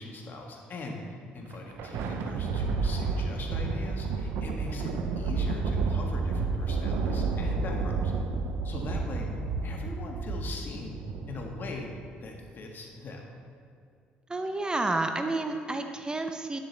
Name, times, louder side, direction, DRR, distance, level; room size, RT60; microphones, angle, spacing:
voice 1, 0.0-8.1 8.6-9.3 9.6-11.0 11.3-11.9 12.2-13.2, left 2 dB, 50° left, 1 dB, 1.5 m, -41 dB
Thunder, 1.4-12.1, right 4 dB, 75° right, 0.6 m, -30 dB
voice 2, 14.3-16.6, right 2 dB, 20° right, 6 dB, 0.7 m, -30 dB
10.0 x 7.4 x 3.4 m, 2.4 s
supercardioid pair, 60°, 4 cm